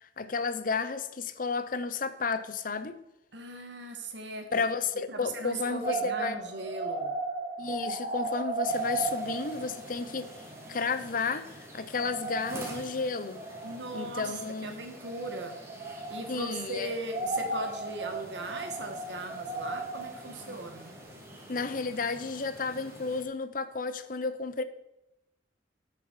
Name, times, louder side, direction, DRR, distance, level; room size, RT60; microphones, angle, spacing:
voice 1, 0.0-3.0 4.5-6.4 7.6-10.3 10.7-13.4 13.9-14.8 16.3-16.9 21.5-24.6, left 4 dB, 50° left, 0.7 m, -32 dB
voice 2, 3.3-4.5 5.1-7.1 13.6-15.6 16.1-20.9, right 2 dB, 75° right, 1.8 m, -38 dB
sound 1, 5.8-11.2 11.5-11.6 11.9-14.2 15.0-16.7 17.0-21.0, right 2 dB, 35° right, 1.8 m, -36 dB
sound 2, 8.6-23.2, equal, 15° right, 2.4 m, -48 dB
13.5 x 7.0 x 4.8 m
head